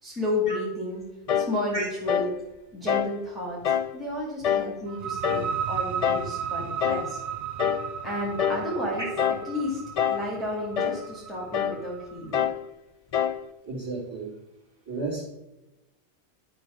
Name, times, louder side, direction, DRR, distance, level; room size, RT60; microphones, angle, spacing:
voice 1, 0.0-1.0 1.3-2.3 2.7-3.6 3.9-7.2 8.0-9.1 9.4-9.8 10.1-12.5, left 1 dB, ahead, -4 dB, 2.3 m, -32 dB
sound 1, 1.3-1.6 2.1-2.4 2.9-3.2 3.6-3.9 4.4-4.8 5.2-5.5 6.0-6.3 6.8-7.1 7.6-7.9 8.4-8.7 9.2-9.5 10.0-10.3 10.8-11.0 11.5-11.8 12.3-12.6 13.1-13.4, left 8 dB, 75° left, 0.3 m, -26 dB
sound 2, 4.9-12.4, right 8 dB, 55° right, 0.6 m, -35 dB
voice 2, 13.6-14.3 14.9-15.2, right 2 dB, 20° right, -2 dB, 2.9 m, -32 dB
10.5 x 4.8 x 6.4 m, 1.0 s
omnidirectional pair, 1.2 m